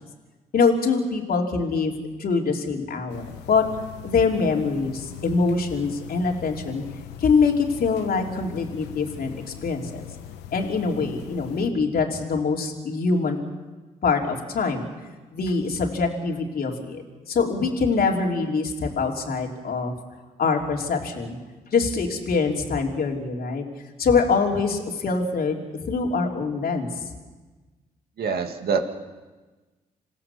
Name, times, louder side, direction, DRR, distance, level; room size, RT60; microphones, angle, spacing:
voice 1, 0.5-1.9 2.2-3.6 4.0-6.8 7.2-10.1 10.5-13.4 14.0-14.9 15.3-17.0 17.3-19.9 20.4-21.4 21.7-23.6 24.0-27.1, left 4 dB, 60° left, 1 dB, 3.2 m, -24 dB
sound 1, 3.1-11.7, left 12 dB, 90° left, 1.0 m, -41 dB
voice 2, 28.2-28.9, right 5 dB, 65° right, 5 dB, 2.4 m, -25 dB
27.5 x 16.0 x 7.1 m, 1.3 s
hypercardioid pair, 45°, 17 cm